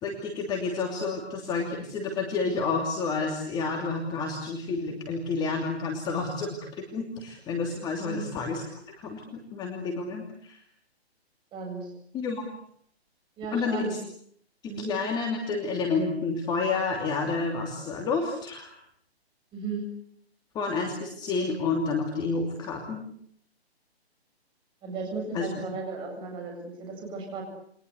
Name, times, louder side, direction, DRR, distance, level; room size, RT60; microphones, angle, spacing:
voice 1, 0.0-9.2 9.5-10.6 12.1-12.5 13.5-14.0 14.8-18.7 20.5-23.0 25.3-25.5, left 4 dB, 15° left, 1 dB, 2.9 m, -30 dB
voice 2, 8.0-8.3 11.5-11.9 13.4-13.9 14.7-14.9 19.5-19.9 24.8-27.4, right 4 dB, 15° right, 3 dB, 7.7 m, -35 dB
29.0 x 24.0 x 8.2 m, 0.67 s
hypercardioid pair, 160°, 32 cm